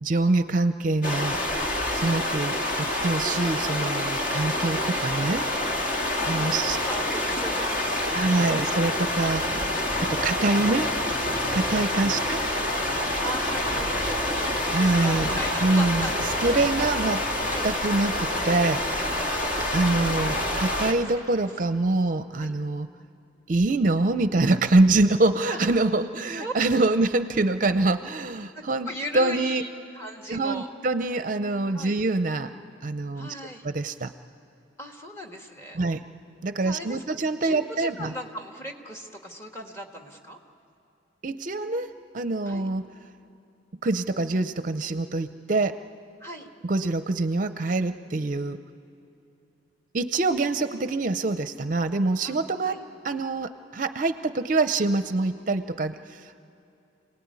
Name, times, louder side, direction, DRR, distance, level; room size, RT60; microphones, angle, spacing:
voice 1, 0.0-1.4 1.9-5.4 5.8-6.8 8.1-9.7 10.0-11.0 11.5-12.4 14.7-16.1 16.4-17.2 17.6-19.1 19.7-22.9 23.5-28.9 29.1-29.6 30.3-32.5 32.8-33.3 33.6-34.1 35.7-36.0 36.4-38.1 41.2-42.9 43.8-45.8 46.6-48.6 49.9-52.8 53.0-56.4, right 2 dB, 45° right, 10 dB, 0.6 m, -25 dB
sound 1, 1.0-20.9, left 1 dB, 45° left, 2.1 m, -27 dB
voice 2, 4.6-5.0 6.2-8.6 9.1-9.4 11.4-11.9 13.2-16.1 16.4-17.0 17.4-17.7 19.2-20.4 22.3-22.5 25.5-25.6 26.4-26.5 28.5-29.7 29.9-30.7 31.7-32.0 33.1-33.7 34.8-35.8 36.6-37.0 37.4-40.4 42.4-42.7 46.2-46.5 52.2-52.4 52.6-52.8, equal, 15° left, 2 dB, 1.8 m, -38 dB
27.5 x 18.5 x 9.6 m, 2.8 s
head